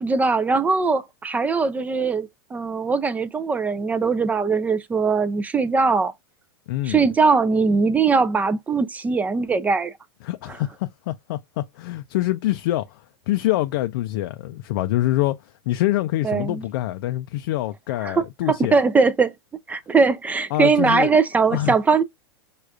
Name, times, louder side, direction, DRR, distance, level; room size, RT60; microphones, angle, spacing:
voice 1, 0.0-6.1 6.9-9.9 16.2-16.6 18.0-19.3 19.7-22.0, right 4 dB, 10° right, 0.3 m, -21 dB
voice 2, 6.7-7.0 10.2-18.8 20.5-21.8, left 15 dB, 65° left, 0.4 m, -25 dB
4.8 x 2.3 x 2.2 m
supercardioid pair, 130°, 13 cm